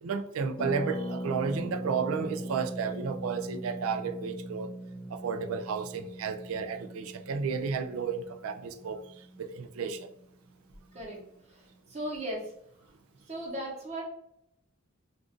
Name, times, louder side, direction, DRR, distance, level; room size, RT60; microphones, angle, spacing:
voice 1, 0.0-4.7 5.1-9.0 9.4-10.1, right 5 dB, 70° right, 0.3 m, -32 dB
Harp, 0.6-10.2 10.4-10.5 10.7-11.0, right 1 dB, 25° left, 0.5 m, -40 dB
voice 2, 11.5-12.5 13.3-14.0, right 1 dB, 30° right, 1.0 m, -37 dB
2.5 x 2.4 x 3.6 m
head